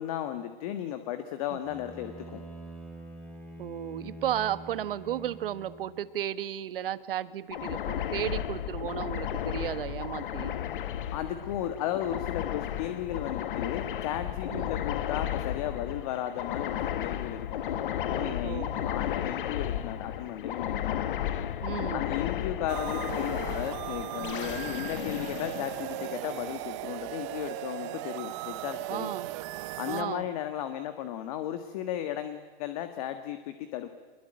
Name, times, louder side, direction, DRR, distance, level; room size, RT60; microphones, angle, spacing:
voice 1, 0.0-2.4 11.1-17.6 18.1-21.1 21.9-29.1 29.8-33.9, left 11 dB, 40° left, 9 dB, 1.6 m, -35 dB
Bowed string instrument, 1.6-6.1, right 1 dB, 5° left, 3.0 m, -45 dB
voice 2, 3.6-10.6 14.5-14.7 18.1-18.9 21.6-22.0 24.2-24.3 28.9-29.3 29.9-30.3, right 11 dB, 65° right, 14 dB, 1.4 m, -34 dB
sound 1, 7.5-26.4, left 10 dB, 60° left, 1.3 m, -34 dB
sound 2, 22.7-30.0, right 16 dB, 30° right, 0.8 m, -37 dB
25.0 x 21.5 x 9.0 m, 1.5 s
hypercardioid pair, 155°, 30 cm